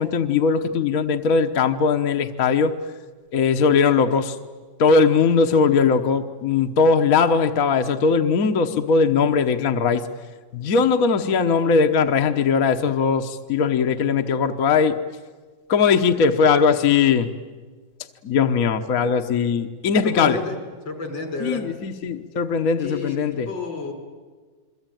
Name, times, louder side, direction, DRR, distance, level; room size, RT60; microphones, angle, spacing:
voice 1, 0.0-2.7 3.3-4.4 4.8-10.0 10.5-15.0 15.7-17.3 18.2-20.4 21.4-23.5, left 5 dB, 55° left, 5 dB, 1.4 m, -19 dB
voice 2, 20.0-20.6 20.9-21.6 22.8-23.2 23.5-23.9, left 3 dB, 90° left, 4 dB, 5.5 m, -30 dB
29.0 x 22.5 x 9.1 m, 1.4 s
omnidirectional pair, 2.0 m